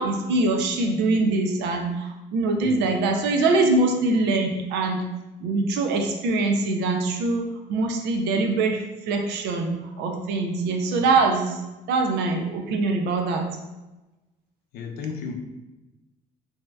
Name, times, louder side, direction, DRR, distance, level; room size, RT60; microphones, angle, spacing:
voice 1, 0.0-5.0 5.4-11.6 11.9-13.5, right 3 dB, 85° right, 3 dB, 0.5 m, -23 dB
voice 2, 14.7-15.3, left 5 dB, 75° left, 3 dB, 0.5 m, -33 dB
2.7 x 2.3 x 3.2 m, 1.1 s
cardioid pair, 110°, 17 cm